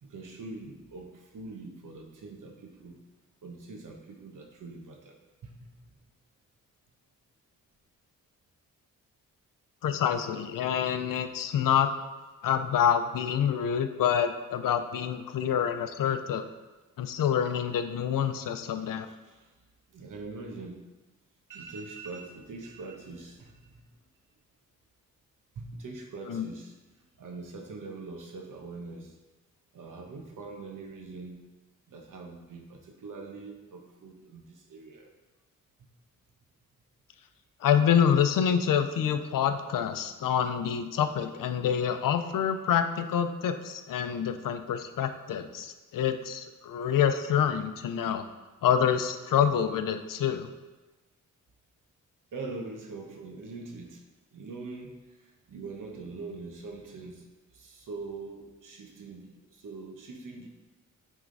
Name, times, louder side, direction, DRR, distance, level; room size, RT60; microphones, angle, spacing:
voice 1, 0.0-3.0 3.4-5.2 5.4-5.7 18.8-19.5 19.9-20.8 21.5-23.8 25.5-26.7 27.2-29.1 29.7-31.4 31.9-35.1 46.7-47.0 52.3-54.0 54.3-57.3 57.5-60.5, right 3 dB, 70° right, 2 dB, 1.1 m, -43 dB
voice 2, 9.8-11.9 12.4-16.4 17.0-19.1 26.3-26.4 37.6-48.2 48.6-50.5, left 8 dB, 80° left, 9 dB, 0.6 m, -27 dB
9.1 x 3.6 x 4.0 m, 1.2 s
cardioid pair, 75°, 32 cm